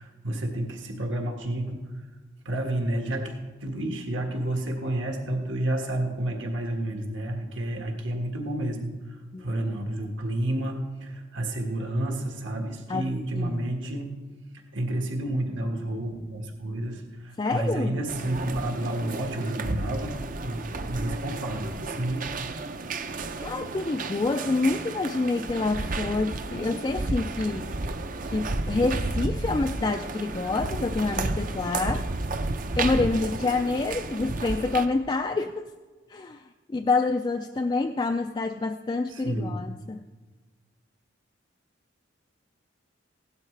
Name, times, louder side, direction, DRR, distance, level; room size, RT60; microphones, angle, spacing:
voice 1, 0.0-1.8 2.4-8.9 9.4-14.1 14.7-20.2 20.4-20.6 20.9-22.3 39.1-39.6, right 1 dB, 70° right, 2 dB, 1.7 m, -30 dB
voice 2, 9.3-9.7 12.9-13.1 13.4-13.7 17.4-18.0 23.4-27.7 28.3-32.1 32.8-35.7 36.1-36.4 36.7-40.0, left 3 dB, 25° left, 5 dB, 0.3 m, -27 dB
sound 1, 18.1-34.9, right 2 dB, 45° right, 0.6 m, -32 dB
16.5 x 12.0 x 3.3 m, 1.3 s
head